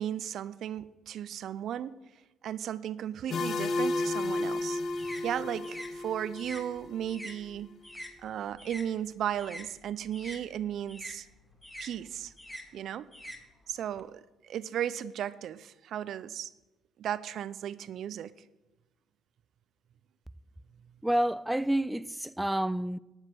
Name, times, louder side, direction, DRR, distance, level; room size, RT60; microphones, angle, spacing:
voice 1, 0.0-2.0 2.4-4.8 5.2-7.7 8.2-11.3 11.8-12.3 12.7-13.1 13.7-16.5 17.0-18.3, right 10 dB, 60° right, 0.5 m, -35 dB
sound 1, 3.3-7.0, left 2 dB, 55° left, 1.0 m, -32 dB
sound 2, 4.2-8.9 9.2-14.0, equal, 10° left, 2.0 m, -46 dB
voice 2, 21.0-23.0, right 1 dB, 5° right, 0.3 m, -29 dB
11.5 x 6.3 x 7.9 m
hypercardioid pair, 50°, 0 cm